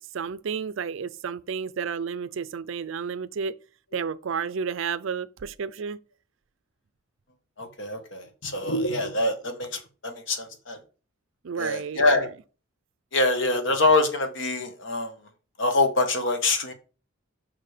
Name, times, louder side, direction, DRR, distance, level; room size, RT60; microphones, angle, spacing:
voice 1, 0.1-3.5 3.9-6.0 11.4-12.3, right 6 dB, 65° right, 0.4 m, -31 dB
voice 2, 7.6-10.8 11.6-12.3 13.1-15.1 15.6-16.7, left 2 dB, 65° left, 1.3 m, -25 dB
5.9 x 4.7 x 4.9 m
head